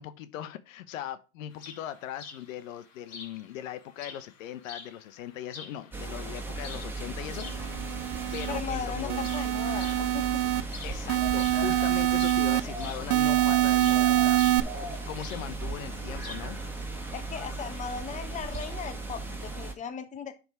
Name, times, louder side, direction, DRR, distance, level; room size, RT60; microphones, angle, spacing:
voice 1, 0.0-7.5 8.3-9.3 10.8-14.4 14.7-16.6, left 11 dB, 70° left, 0.9 m, -39 dB
sound 1, 1.5-18.9, left 5 dB, 40° left, 2.9 m, -49 dB
sound 2, 5.9-19.7, right 2 dB, 5° right, 1.7 m, -37 dB
sound 3, 7.5-8.6 9.1-10.6 11.1-12.6 13.1-14.6, right 14 dB, 80° right, 0.7 m, -25 dB
voice 2, 8.5-10.4 17.1-20.4, left 6 dB, 20° left, 0.9 m, -37 dB
10.5 x 3.6 x 4.7 m
hypercardioid pair, 115°, 41 cm